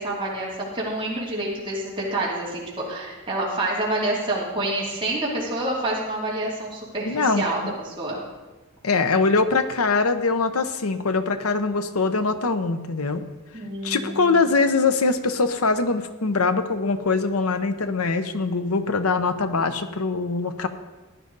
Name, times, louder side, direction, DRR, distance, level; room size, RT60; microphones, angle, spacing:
voice 1, 0.0-8.2 13.5-14.5, right 1 dB, 25° right, -5 dB, 2.9 m, -28 dB
voice 2, 7.1-7.7 8.8-13.2 13.8-20.7, left 4 dB, 85° left, 10 dB, 0.8 m, -23 dB
15.0 x 10.5 x 4.0 m, 1.2 s
head